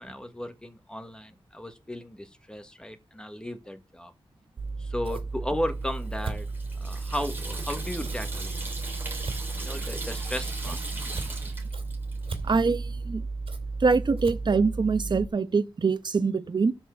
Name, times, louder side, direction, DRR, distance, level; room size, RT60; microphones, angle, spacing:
voice 1, 0.0-4.1 4.8-6.5 6.8-8.5 9.6-10.8, left 1 dB, 10° left, 1.4 m, -35 dB
Scissors, 4.6-15.3, right 3 dB, 65° right, 2.7 m, -34 dB
Water tap faucet / Sink (filling or washing), 5.8-12.6, right 2 dB, 20° right, 4.0 m, -39 dB
voice 2, 10.9-11.5 12.4-13.3 13.8-16.7, right 4 dB, 50° right, 1.1 m, -25 dB
12.5 x 4.4 x 7.0 m
wide cardioid pair, 145°, 10 cm